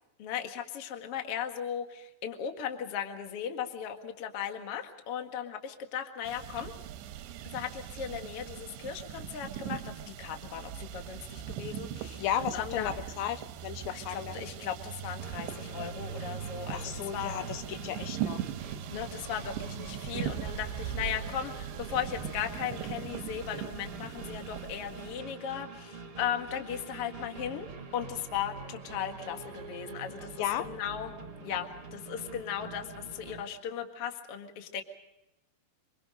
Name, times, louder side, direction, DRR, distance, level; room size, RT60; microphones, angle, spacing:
voice 1, 0.2-6.7 7.5-12.2 12.5-12.9 13.9-17.4 18.9-31.1 31.4-34.8, left 9 dB, 50° left, 4 dB, 1.8 m, -37 dB
sound 1, 6.3-25.2, right 10 dB, 80° right, 3.0 m, -40 dB
voice 2, 12.2-13.4 13.6-14.3 16.7-18.4 30.4-30.7, left 10 dB, 85° left, 11 dB, 3.3 m, -34 dB
sound 2, 15.2-33.4, right 4 dB, 40° right, 2.3 m, -45 dB
26.0 x 23.5 x 5.1 m, 0.91 s
omnidirectional pair, 5.2 m